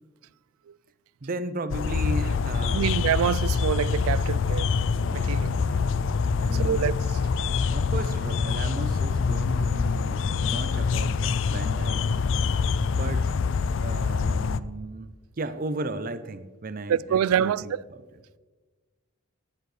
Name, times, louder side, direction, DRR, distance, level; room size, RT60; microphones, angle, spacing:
voice 1, 1.2-2.9 5.1-6.9 7.7-12.0 12.9-13.3 13.7-18.0, right 2 dB, 40° right, 0.6 m, -36 dB
sound 1, 1.7-14.6, left 5 dB, 60° left, 0.4 m, -25 dB
voice 2, 2.7-4.7 5.1-5.5 6.6-7.0 16.9-17.8, right 9 dB, 85° right, 0.3 m, -25 dB
14.5 x 10.5 x 3.3 m
head